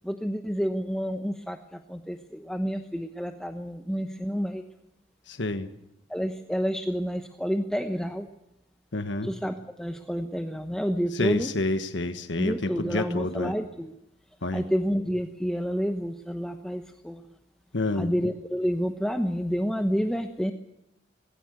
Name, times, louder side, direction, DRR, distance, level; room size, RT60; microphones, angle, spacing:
voice 1, 0.0-4.6 6.1-8.3 9.2-11.5 12.4-13.9 14.5-17.2 18.0-20.5, equal, 5° left, 5 dB, 1.0 m, -29 dB
voice 2, 5.3-5.7 8.9-9.3 11.1-13.5 14.4-14.6 17.7-18.1, left 2 dB, 80° left, 8 dB, 1.5 m, -29 dB
20.5 x 16.5 x 8.0 m, 0.89 s
head